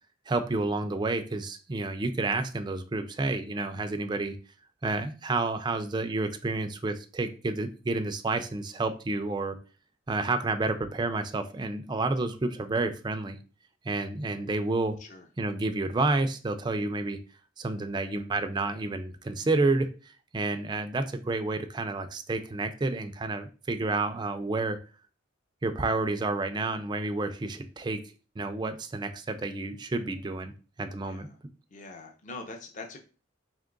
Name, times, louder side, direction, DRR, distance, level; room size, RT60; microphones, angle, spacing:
voice 1, 0.3-4.4 4.8-9.6 10.1-13.4 13.9-15.0 15.4-17.2 17.6-19.9 20.3-24.8 25.6-28.0 28.4-30.5 30.8-31.3, right 3 dB, 25° right, 7 dB, 0.3 m, -30 dB
voice 2, 31.0-31.4 31.7-33.0, left 3 dB, 40° left, 3 dB, 0.6 m, -43 dB
3.5 x 2.9 x 3.8 m, 0.35 s
head